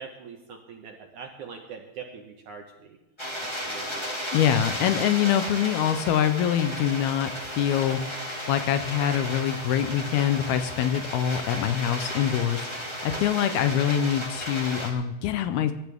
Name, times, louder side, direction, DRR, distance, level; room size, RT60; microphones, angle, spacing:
voice 1, 0.0-3.0 3.4-4.1, right 6 dB, 65° right, 3 dB, 2.0 m, -43 dB
sound 1, 3.2-14.9, equal, 10° left, 1.6 m, -34 dB
voice 2, 4.3-8.0 8.5-15.7, left 9 dB, 80° left, 10 dB, 2.4 m, -25 dB
sound 2, 4.4-12.5, right 2 dB, 25° right, 1.2 m, -50 dB
23.5 x 12.0 x 3.5 m, 1.0 s
omnidirectional pair, 4.8 m